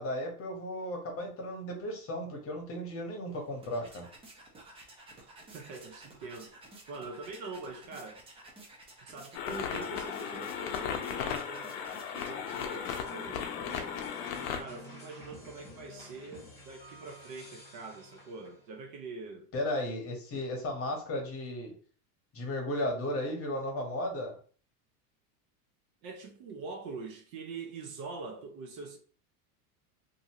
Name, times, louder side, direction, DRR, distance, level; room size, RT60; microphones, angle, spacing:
voice 1, 0.0-4.1 19.5-21.7 22.3-24.4, left 1 dB, 30° left, 0.9 m, -35 dB
sound 1, 3.3-13.3, right 2 dB, 15° right, 0.4 m, -53 dB
voice 2, 5.5-6.5 6.9-8.2 9.0-11.8 12.1-14.0 14.6-19.5 20.3-20.4 26.0-29.0, right 4 dB, 60° right, 0.8 m, -44 dB
sound 2, 9.3-14.6, left 8 dB, 60° left, 0.7 m, -36 dB
sound 3, 13.1-18.7, left 2 dB, 5° left, 1.2 m, -50 dB
2.7 x 2.6 x 2.8 m
supercardioid pair, 115°, 46 cm